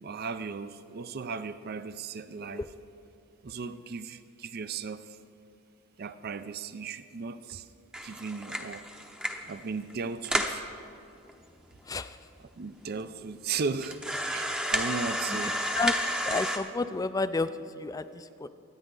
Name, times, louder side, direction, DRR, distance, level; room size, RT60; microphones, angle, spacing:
voice 1, 0.0-2.6 3.4-5.2 6.0-7.7 8.0-8.9 9.4-10.7 12.4-15.6, right 5 dB, 45° right, 12 dB, 0.4 m, -36 dB
sound 1, 7.9-9.5 9.9-10.0 10.2-10.6 11.3-11.4 11.6-11.7 12.4-12.5 13.0-13.1 13.8-16.6, equal, 5° right, 0.7 m, -31 dB
voice 2, 11.9-12.2 15.8-16.0 16.2-17.5 17.8-18.5, left 3 dB, 15° left, 12 dB, 0.3 m, -30 dB
23.5 x 9.1 x 3.8 m, 2.7 s
head